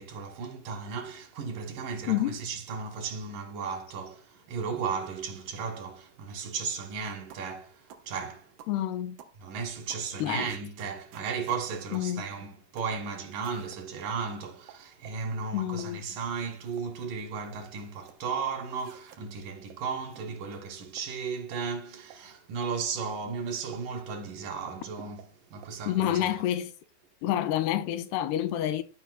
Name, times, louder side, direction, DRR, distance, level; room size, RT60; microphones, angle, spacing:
voice 1, 0.0-8.6 9.4-26.4, right 5 dB, 60° right, 3.0 m, -35 dB
voice 2, 2.1-2.4 8.7-9.2 10.2-10.5 11.9-12.2 15.5-16.0 25.9-26.7 27.2-28.8, left 12 dB, 90° left, 3.1 m, -28 dB
sound 1, 7.3-7.5 7.9-8.1 8.6-8.8 9.2-9.4 9.9-10.1 10.5-11.6 11.9-12.1 12.8-13.0 13.4-13.8 14.4-15.2 15.7-15.9 16.4-16.9 17.2-18.2 18.7-19.2 19.7-19.8 20.1-20.2 20.5-20.6 21.0-21.1 21.5-21.6 22.1-22.2 22.6-22.8 23.1-23.2 23.7-24.2 24.7-24.8 25.2-25.3 25.6-25.7, right 8 dB, 75° right, 3.5 m, -52 dB
13.0 x 5.2 x 7.8 m
omnidirectional pair, 4.6 m